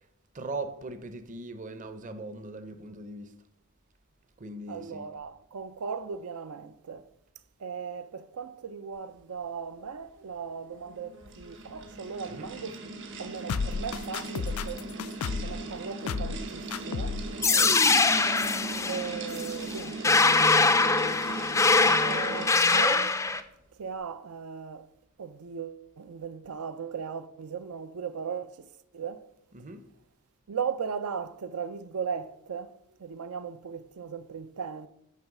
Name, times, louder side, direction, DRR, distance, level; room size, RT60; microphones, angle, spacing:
voice 1, 0.3-3.3 4.4-5.1 12.3-12.5 17.5-17.8 29.5-29.8, right 2 dB, 35° right, 0.6 m, -40 dB
voice 2, 4.7-7.0 7.6-12.9 13.2-14.9 15.4-17.2 18.9-20.3 21.8-23.1 23.8-24.9 25.2-29.3 30.5-32.7 33.0-34.9, right 6 dB, 85° right, 0.5 m, -37 dB
sound 1, 10.8-22.9, right 2 dB, 55° right, 1.0 m, -39 dB
sound 2, 13.5-15.6 16.1-16.4 16.7-17.3 17.6-17.7, left 5 dB, 80° left, 0.4 m, -32 dB
sound 3, 17.4-23.4, left 3 dB, 15° left, 0.3 m, -23 dB
9.1 x 3.2 x 6.0 m
head